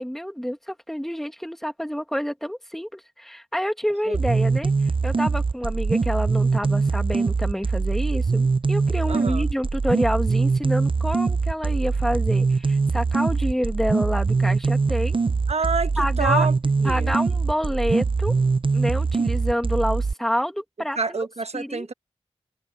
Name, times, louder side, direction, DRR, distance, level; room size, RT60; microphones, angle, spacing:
voice 1, 0.0-15.2 16.0-16.5 16.8-18.3 18.7-21.3 21.5-21.9, equal, 5° left, 2.2 m, -28 dB
sound 1, 4.1-20.1, right 4 dB, 50° right, 0.6 m, -22 dB
voice 2, 9.1-9.4 15.5-16.5 16.8-17.1 21.0-21.9, right 4 dB, 75° right, 1.2 m, -27 dB
wide cardioid pair, 50°, 11 cm